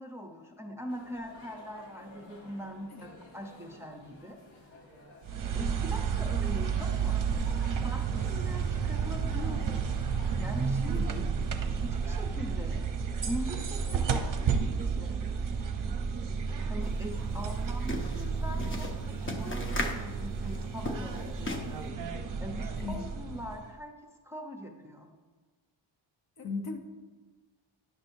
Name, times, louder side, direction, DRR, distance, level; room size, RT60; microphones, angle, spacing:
voice 1, 0.0-4.4 5.5-7.3 7.8-9.9 10.4-11.2 11.8-12.9 13.2-15.2 16.7-21.9 22.4-23.9 24.2-25.1, equal, 5° right, 2 dB, 0.6 m, -42 dB
sound 1, 0.9-10.6, left 1 dB, 85° left, 1.5 m, -52 dB
sound 2, 5.2-23.7, right 6 dB, 45° right, 0.7 m, -31 dB
voice 2, 10.9-11.3 15.4-15.7 22.8-23.0 26.4-26.8, left 4 dB, 50° left, 3 dB, 0.9 m, -38 dB
sound 3, 16.8-16.9 17.2-21.9, left 2 dB, 25° left, 0.8 m, -37 dB
9.9 x 6.2 x 2.6 m, 1.3 s
wide cardioid pair, 105°, 47 cm